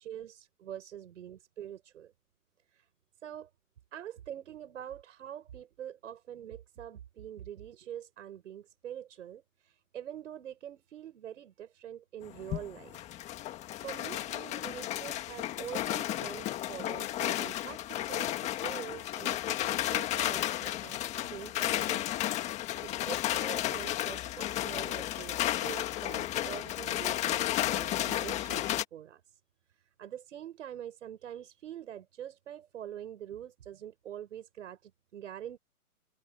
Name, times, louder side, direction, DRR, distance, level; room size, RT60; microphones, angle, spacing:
voice 1, 0.0-2.1 2.7-2.9 3.2-3.5 3.9-13.0 13.8-22.1 22.4-29.4 29.7-35.6, right 10 dB, 55° right, 6.3 m, -45 dB
sound 1, 12.2-28.8, left 13 dB, 15° left, 1.6 m, -33 dB
open air
hypercardioid pair, 150°, 44 cm